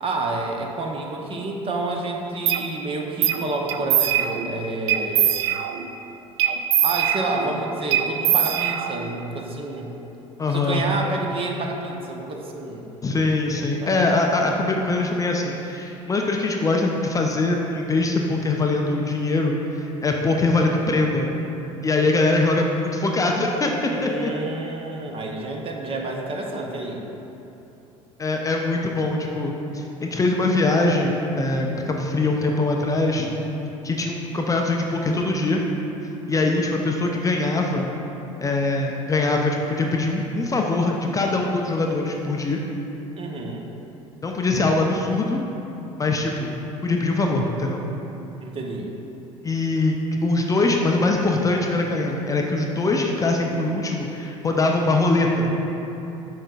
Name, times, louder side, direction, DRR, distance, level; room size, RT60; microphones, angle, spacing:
voice 1, 0.0-5.3 6.8-9.9 10.5-12.9 13.6-14.0 23.9-27.0 43.2-43.6 48.4-48.9, right 2 dB, 35° right, 1 dB, 0.8 m, -29 dB
sound 1, 2.5-2.6 3.2-3.4 3.7-4.5 4.9-5.9 6.4-7.5 7.9-9.1, right 10 dB, 55° right, 0.5 m, -22 dB
voice 2, 10.4-10.8 13.0-21.3 21.8-24.3 28.2-33.3 33.8-35.6 36.3-37.9 38.4-42.6 44.2-45.4 46.0-47.8 49.4-55.5, left 2 dB, 20° left, 1 dB, 0.6 m, -22 dB
8.7 x 6.4 x 2.4 m, 3.0 s
figure-of-eight pair, 65°, 17 cm